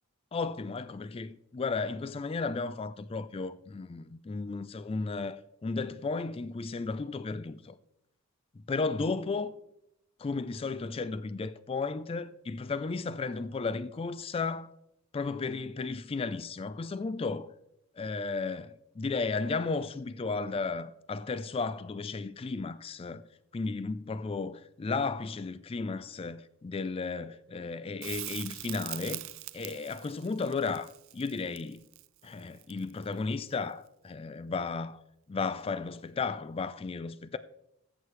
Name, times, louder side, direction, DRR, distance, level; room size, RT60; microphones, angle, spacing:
voice 1, 0.3-7.8 8.7-9.5 10.2-14.7 15.1-17.5 18.0-23.2 23.5-29.2 29.5-31.8 32.2-35.0 35.3-37.4, left 4 dB, 25° left, 0.3 m, -34 dB
Crackle, 28.0-33.1 35.9-36.0, right 19 dB, 65° right, 0.4 m, -42 dB
15.5 x 8.2 x 3.2 m
head